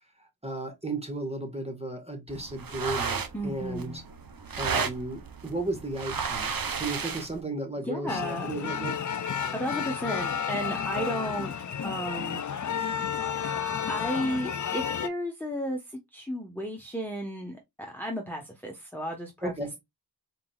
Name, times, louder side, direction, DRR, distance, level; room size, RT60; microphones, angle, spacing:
voice 1, 0.4-4.0 4.6-9.0 19.4-19.7, right 2 dB, 15° right, 1.5 m, -34 dB
sound 1, 2.3-7.4, right 5 dB, 55° right, 0.7 m, -33 dB
voice 2, 3.3-4.0 7.8-8.5 9.5-11.5 11.8-12.4 13.9-19.5, equal, 5° left, 1.0 m, -33 dB
sound 2, 8.1-15.1, left 7 dB, 45° left, 0.5 m, -31 dB
4.3 x 3.8 x 2.3 m
wide cardioid pair, 45°, 41 cm